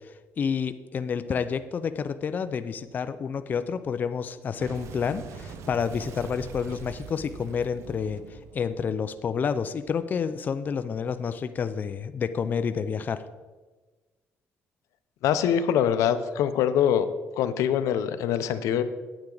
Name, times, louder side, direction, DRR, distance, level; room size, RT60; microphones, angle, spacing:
voice 1, 0.0-13.2, left 6 dB, 35° left, 11 dB, 0.4 m, -29 dB
Boom, 4.6-9.8, right 5 dB, 65° right, 0.8 m, -43 dB
voice 2, 15.2-17.1 17.4-18.8, left 9 dB, 85° left, 11 dB, 0.6 m, -24 dB
8.9 x 8.8 x 3.8 m, 1.3 s
cardioid pair, 130°, 5 cm